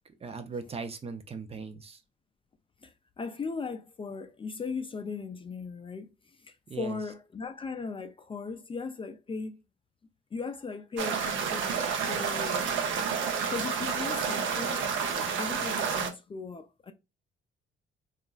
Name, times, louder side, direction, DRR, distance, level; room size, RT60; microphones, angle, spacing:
voice 1, 0.2-2.0 6.7-7.0, right 4 dB, 30° right, 0.5 m, -38 dB
voice 2, 2.8-9.5 10.3-12.9 13.5-16.9, left 4 dB, 25° left, 0.4 m, -38 dB
sound 1, 11.0-16.1, right 6 dB, 75° right, 0.6 m, -30 dB
2.9 x 2.4 x 2.3 m
cardioid pair, 90°, 20 cm